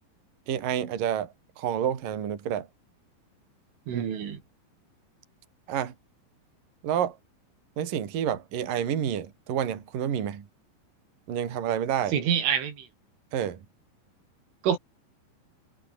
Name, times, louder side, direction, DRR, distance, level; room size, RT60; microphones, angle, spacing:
voice 1, 0.5-2.7 3.9-4.0 5.7-5.9 6.8-7.2 7.8-10.5 11.3-12.2 13.3-13.6, right 9 dB, 50° right, 4.1 m, -29 dB
voice 2, 3.9-4.4 12.1-12.9 14.6-14.8, right 8 dB, 85° right, 6.2 m, -26 dB
omnidirectional pair, 5.5 m